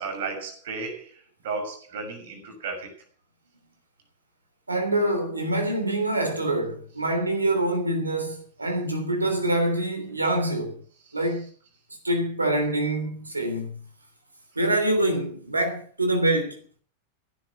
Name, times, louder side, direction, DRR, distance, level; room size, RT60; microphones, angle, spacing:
voice 1, 0.0-2.9 11.1-11.2, right 4 dB, 55° right, 6.5 m, -34 dB
voice 2, 4.7-10.8 11.1-11.5 12.0-13.8 14.5-16.6, right 1 dB, 80° right, 3.2 m, -25 dB
16.0 x 11.5 x 6.1 m
figure-of-eight pair, 90°, 0 cm